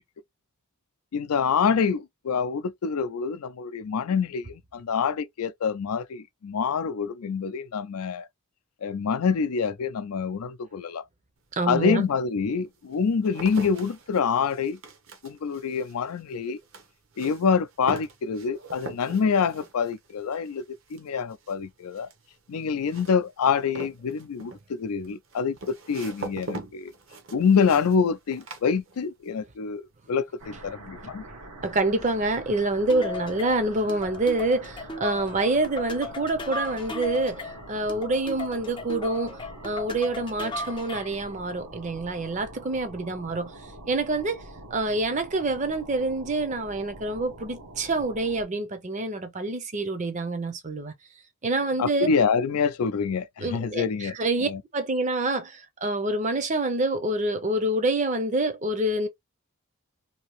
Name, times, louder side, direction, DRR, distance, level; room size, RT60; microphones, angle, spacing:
voice 1, 1.1-8.3 8.8-11.1 11.7-14.8 15.2-16.6 17.2-20.6 20.9-22.1 22.5-26.9 27.3-31.2 51.8-54.6, left 6 dB, 80° left, 0.4 m, -26 dB
sound 1, 11.4-11.5 12.2-29.4 29.7-30.2, right 2 dB, 60° right, 0.8 m, -42 dB
voice 2, 11.6-12.0 31.6-39.4 39.6-43.5 43.9-44.4 44.7-50.9 51.4-52.1 53.4-59.1, right 2 dB, 30° right, 0.6 m, -27 dB
sound 2, 30.4-48.4, right 1 dB, 90° right, 1.0 m, -45 dB
sound 3, 32.9-41.2, left 3 dB, 20° left, 0.4 m, -36 dB
2.8 x 2.6 x 3.0 m
head